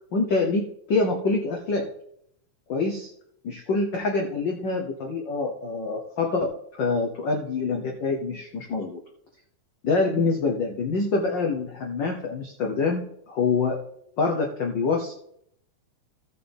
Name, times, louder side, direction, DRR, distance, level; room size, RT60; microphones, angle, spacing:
voice 1, 0.1-1.9 2.7-3.1 3.4-9.0 9.8-13.8 14.2-15.1, left 3 dB, 75° left, 1 dB, 1.0 m, -26 dB
15.5 x 6.5 x 3.5 m, 0.72 s
omnidirectional pair, 3.4 m